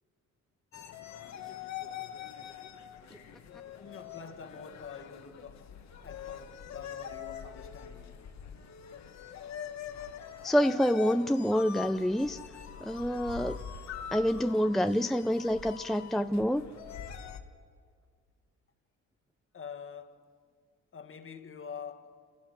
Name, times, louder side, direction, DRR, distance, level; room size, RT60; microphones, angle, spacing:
sound 1, 0.7-17.4, left 9 dB, 65° left, 1.4 m, -44 dB
voice 1, 3.8-8.3 17.4-17.5 19.5-20.3 20.9-22.3, left 6 dB, 45° left, 1.6 m, -46 dB
voice 2, 10.4-12.4 12.8-13.6 14.1-16.6, equal, ahead, 0.5 m, -27 dB
27.5 x 15.5 x 6.4 m
cardioid pair, 90°, 30 cm